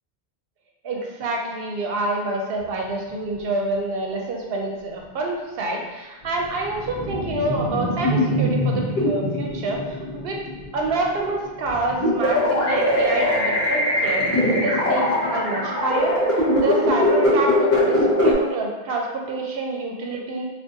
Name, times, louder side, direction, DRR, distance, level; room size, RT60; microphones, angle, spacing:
voice 1, 0.8-10.4 10.7-20.4, right 2 dB, 70° right, 0 dB, 0.8 m, -27 dB
sound 1, 6.3-11.1 11.6-18.3, left 1 dB, 50° left, 0.9 m, -22 dB
3.7 x 2.4 x 2.6 m, 1.2 s
omnidirectional pair, 1.1 m